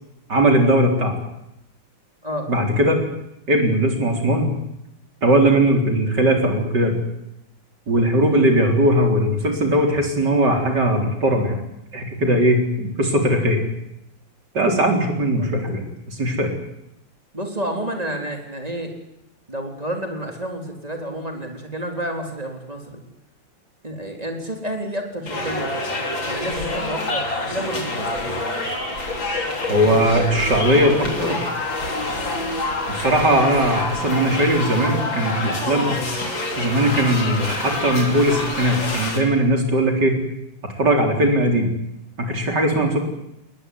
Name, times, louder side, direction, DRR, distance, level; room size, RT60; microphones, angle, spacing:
voice 1, 0.3-1.1 2.5-3.0 3.5-4.5 5.2-7.0 7.9-11.6 11.9-13.6 14.5-16.5 29.7-31.4 32.9-36.0 36.6-40.2 40.6-41.7 42.2-43.0, right 1 dB, 60° right, 3 dB, 4.6 m, -19 dB
voice 2, 17.3-18.9 19.5-23.0 23.8-25.7 26.2-28.3, right 1 dB, 20° right, 2 dB, 4.1 m, -30 dB
sound 1, 25.3-39.2, left 2 dB, 80° left, 4.7 m, -27 dB
20.5 x 20.5 x 9.7 m, 0.84 s
omnidirectional pair, 2.1 m